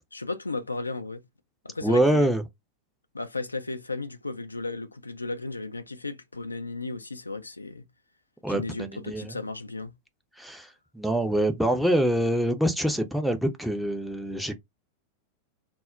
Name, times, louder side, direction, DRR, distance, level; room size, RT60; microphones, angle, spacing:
voice 1, 0.1-1.2 1.6-2.3 3.1-7.9 8.5-9.9, left 3 dB, 80° left, 0.3 m, -34 dB
voice 2, 1.8-2.4 8.4-9.4 10.4-10.7 10.9-14.5, right 1 dB, ahead, 0.5 m, -25 dB
2.2 x 2.0 x 3.6 m
figure-of-eight pair, 90°, 0 cm